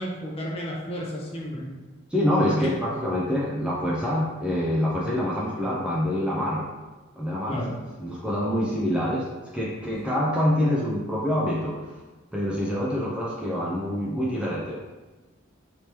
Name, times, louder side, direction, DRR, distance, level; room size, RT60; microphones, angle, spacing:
voice 1, 0.0-1.7 2.4-2.7 7.5-7.7, equal, 30° left, -4 dB, 0.7 m, -32 dB
voice 2, 2.1-6.7 7.1-7.6 8.0-9.2 9.5-12.0 12.3-14.8, left 1 dB, 5° right, -6 dB, 0.4 m, -26 dB
3.4 x 2.9 x 2.9 m, 1.2 s
head